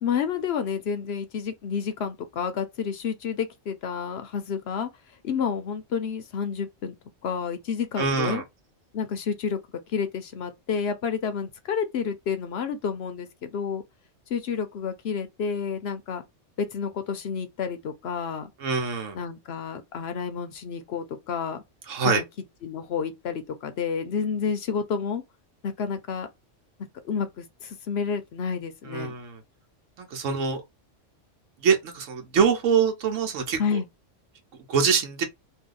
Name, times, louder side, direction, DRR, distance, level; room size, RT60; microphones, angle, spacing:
voice 1, 0.0-4.9 5.2-6.9 7.2-8.4 8.9-9.6 9.9-13.8 14.3-16.2 16.6-18.5 19.1-21.6 22.0-22.2 22.6-25.2 25.6-26.3 27.0-29.1 33.6-33.9, left 6 dB, 65° left, 0.8 m, -30 dB
voice 2, 8.0-8.4 18.6-19.2 21.9-22.2 28.9-29.4 30.0-30.6 31.6-33.8 34.7-35.2, right 6 dB, 90° right, 1.1 m, -24 dB
2.7 x 2.3 x 3.7 m
omnidirectional pair, 1.3 m